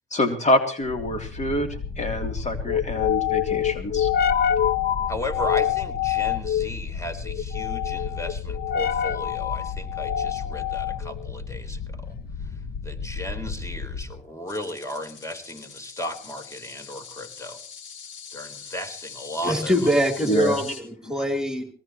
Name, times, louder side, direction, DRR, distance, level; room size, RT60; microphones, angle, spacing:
voice 1, 0.1-4.1 20.3-20.6, left 1 dB, 35° left, 4 dB, 3.3 m, -26 dB
sound 1, 0.9-14.2, left 9 dB, 50° left, 1.3 m, -27 dB
voice 2, 5.1-12.1 12.8-17.6 18.3-19.9, left 1 dB, 15° left, 6 dB, 4.0 m, -35 dB
sound 2, 14.5-20.8, left 7 dB, 70° left, 4.3 m, -42 dB
voice 3, 19.4-21.7, equal, 5° right, 5 dB, 3.5 m, -23 dB
22.5 x 18.5 x 3.1 m, 0.40 s
cardioid pair, 90°, 20 cm